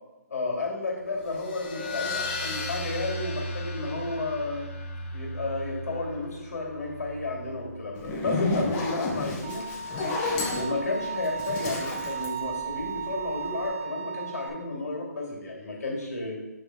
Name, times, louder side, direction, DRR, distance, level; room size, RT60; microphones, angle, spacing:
voice 1, 0.3-4.7 5.1-9.7 10.5-16.4, left 2 dB, 60° left, -1 dB, 2.3 m, -32 dB
sound 1, 1.2-8.2, left 2 dB, 35° left, 0.9 m, -36 dB
Zipper (clothing), 8.0-13.2, left 3 dB, 15° left, 0.6 m, -31 dB
Bowed string instrument, 9.4-14.5, right 6 dB, 20° right, 0.7 m, -35 dB
6.5 x 3.6 x 4.6 m, 1.0 s
hypercardioid pair, 165°, 9 cm